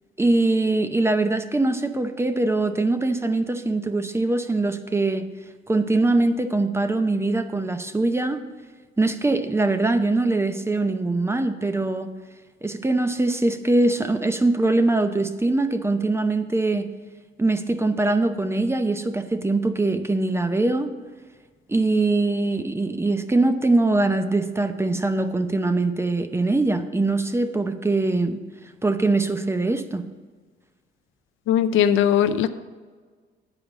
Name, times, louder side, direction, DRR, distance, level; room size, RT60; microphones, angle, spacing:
voice 1, 0.2-5.3 5.7-8.4 9.0-12.1 12.6-16.9 17.4-20.9 21.7-28.4 28.8-30.1, right 2 dB, 15° right, 9 dB, 0.7 m, -22 dB
voice 2, 31.5-32.5, left 9 dB, 80° left, 12 dB, 0.5 m, -19 dB
8.6 x 5.0 x 7.2 m, 1.4 s
cardioid pair, 90°, 20 cm